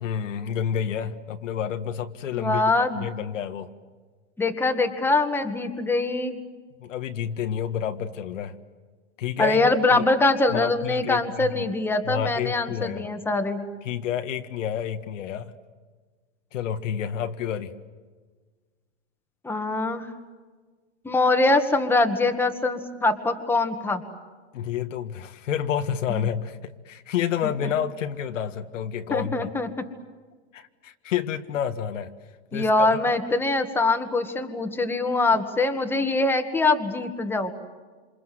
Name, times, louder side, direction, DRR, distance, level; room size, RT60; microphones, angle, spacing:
voice 1, 0.0-3.7 6.8-8.6 9.2-10.0 10.5-11.7 12.1-13.1 13.8-15.5 16.5-17.7 24.5-29.5 30.5-32.1 32.5-33.0, left 8 dB, 80° left, 6 dB, 1.8 m, -29 dB
voice 2, 2.3-3.1 4.4-6.4 9.4-13.7 19.4-20.1 21.0-24.0 26.1-26.3 29.1-29.7 32.5-37.5, left 2 dB, 5° left, 6 dB, 1.8 m, -23 dB
27.5 x 27.5 x 7.7 m, 1.4 s
supercardioid pair, 145°, 37 cm